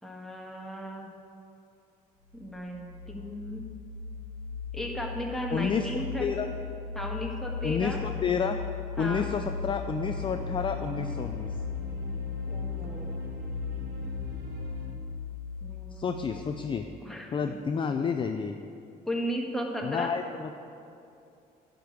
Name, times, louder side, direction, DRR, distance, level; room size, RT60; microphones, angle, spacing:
voice 1, 0.0-1.1 2.3-3.6 4.7-6.3 6.9-8.0 9.0-9.3 12.5-13.2 15.6-16.2 17.0-17.5 19.1-20.1, equal, ahead, -1 dB, 1.5 m, -35 dB
sound 1, 2.3-16.8, left 5 dB, 80° left, 0.8 m, -37 dB
voice 2, 5.5-5.9 6.2-6.5 7.6-8.6 9.0-11.5 15.9-16.9 17.3-18.6 19.8-20.5, left 6 dB, 30° left, 6 dB, 0.4 m, -30 dB
sound 2, 9.9-14.9, equal, 70° right, 1.9 m, -43 dB
10.5 x 5.2 x 7.8 m, 2.6 s
cardioid pair, 110°, 17 cm